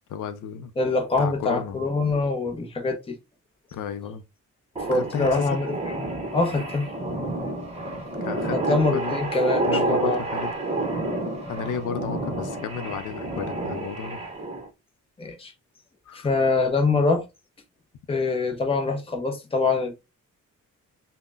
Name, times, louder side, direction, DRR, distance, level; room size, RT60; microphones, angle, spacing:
voice 1, 0.1-0.7 1.2-1.9 3.7-4.2 4.9-5.6 8.2-9.2 9.7-10.6 11.5-14.2 16.1-16.3, left 7 dB, 85° left, 0.6 m, -33 dB
voice 2, 0.8-3.2 4.9-6.1 6.3-6.9 8.5-10.2 15.2-15.5 16.1-17.2 18.1-19.9, left 3 dB, 20° left, 0.6 m, -24 dB
sound 1, 4.8-14.7, right 2 dB, 20° right, 0.8 m, -29 dB
5.5 x 2.1 x 2.4 m
wide cardioid pair, 170°, 30 cm